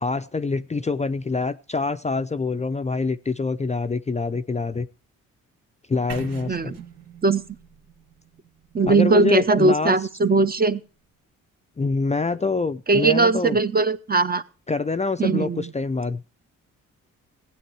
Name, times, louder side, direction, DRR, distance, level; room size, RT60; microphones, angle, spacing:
voice 1, 0.0-4.9 5.9-6.7 8.9-10.0 11.8-13.6 14.7-16.2, left 4 dB, 20° left, 10 dB, 0.5 m, -25 dB
sound 1, 6.1-10.1, right 8 dB, 90° right, 1.4 m, -42 dB
voice 2, 6.5-6.8 7.2-7.4 8.7-10.8 12.9-14.4 15.2-15.6, right 3 dB, 25° right, 12 dB, 0.8 m, -19 dB
16.0 x 8.7 x 4.7 m, 0.38 s
supercardioid pair, 65°, 34 cm